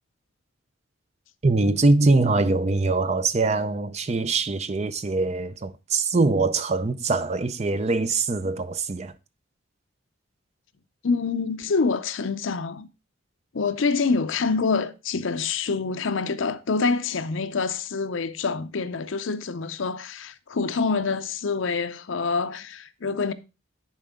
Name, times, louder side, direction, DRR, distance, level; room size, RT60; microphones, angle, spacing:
voice 1, 1.4-9.1, right 3 dB, 35° right, 0.5 m, -23 dB
voice 2, 11.0-12.9 13.5-23.3, left 4 dB, 70° left, 0.6 m, -26 dB
10.5 x 4.4 x 3.6 m
head